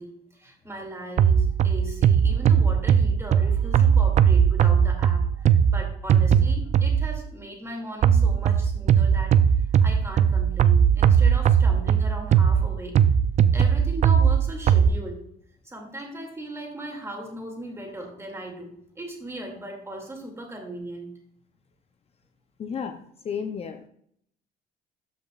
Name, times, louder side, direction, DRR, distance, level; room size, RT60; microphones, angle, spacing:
voice 1, 0.0-9.4 9.8-12.9 13.5-15.2 15.6-21.1, right 1 dB, 15° right, 1 dB, 2.3 m, -38 dB
sound 1, 1.2-7.2 8.0-14.9, right 8 dB, 45° right, 0.4 m, -19 dB
voice 2, 22.6-23.9, left 6 dB, 35° left, 7 dB, 0.6 m, -33 dB
12.5 x 5.3 x 2.4 m, 0.67 s
cardioid pair, 110°, 17 cm